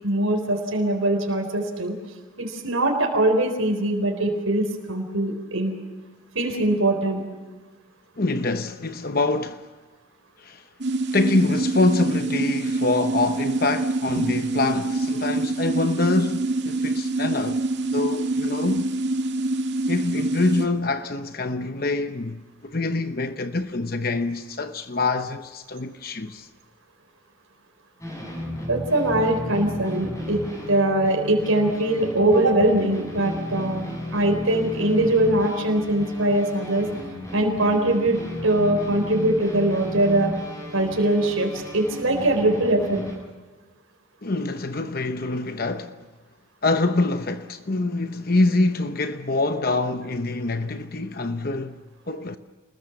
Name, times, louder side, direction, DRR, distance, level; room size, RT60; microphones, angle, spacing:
voice 1, 0.0-1.9 2.4-5.8 6.3-7.2 28.7-33.9 34.1-36.9 37.3-40.3 40.7-43.0, right 1 dB, 80° right, 4.2 m, -22 dB
voice 2, 8.2-9.7 10.4-10.6 11.1-17.6 17.9-18.8 19.9-26.5 44.2-46.0 46.6-52.4, left 2 dB, 45° left, 0.9 m, -25 dB
sound 1, 10.8-20.6, right 2 dB, 55° right, 2.3 m, -25 dB
sound 2, 28.0-43.1, left 1 dB, 15° left, 7.9 m, -34 dB
29.0 x 21.0 x 7.2 m
head